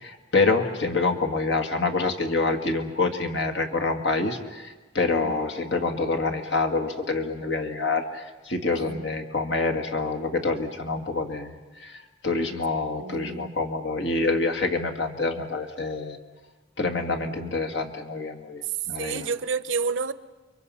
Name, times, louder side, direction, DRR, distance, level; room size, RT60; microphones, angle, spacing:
voice 1, 0.0-11.6 11.8-16.2 16.8-19.3, left 3 dB, 70° left, 2.0 m, -27 dB
voice 2, 8.7-9.0 13.0-13.6 19.0-20.1, right 5 dB, 90° right, 0.8 m, -30 dB
30.0 x 23.0 x 5.6 m
head